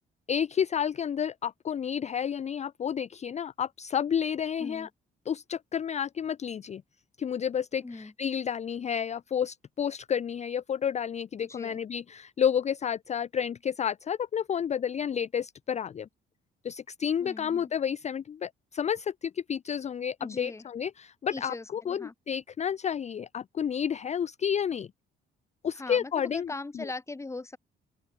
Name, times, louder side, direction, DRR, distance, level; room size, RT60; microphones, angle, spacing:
voice 1, 0.3-4.9 5.3-6.8 7.2-16.1 16.6-24.9 25.6-26.9, left 8 dB, 35° left, 0.4 m, -30 dB
voice 2, 7.8-8.1 11.4-11.8 17.2-17.7 20.2-20.6 21.3-22.1 25.8-27.6, left 3 dB, 15° left, 0.9 m, -40 dB
open air
cardioid pair, 90°, 20 cm